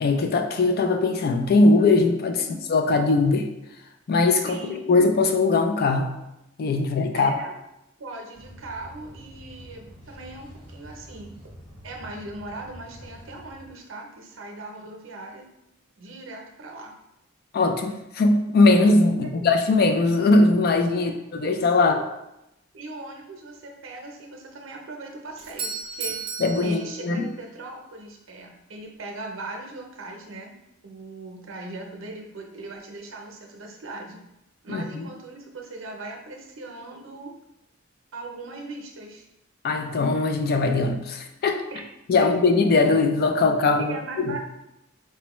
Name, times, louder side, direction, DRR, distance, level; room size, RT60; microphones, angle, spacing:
voice 1, 0.0-2.4 2.7-3.5 4.1-6.1 6.6-7.3 17.5-22.0 26.4-27.3 34.7-35.1 39.6-41.6 42.1-44.4, left 3 dB, 50° left, 5 dB, 0.4 m, -20 dB
voice 2, 4.3-5.0 7.1-7.5 8.0-11.3 11.8-15.4 16.0-16.9 19.2-19.5 20.9-21.2 21.8-22.0 22.7-26.2 26.6-30.5 30.8-34.2 34.6-37.3 38.1-39.2 41.7-41.8 42.2-42.3 43.8-44.4, right 2 dB, 75° right, 1 dB, 0.6 m, -39 dB
sound 1, 8.3-13.7, equal, 20° left, 0.9 m, -46 dB
Doorbell, 25.4-27.5, right 5 dB, 30° right, 0.4 m, -34 dB
4.3 x 2.1 x 3.0 m, 0.89 s
head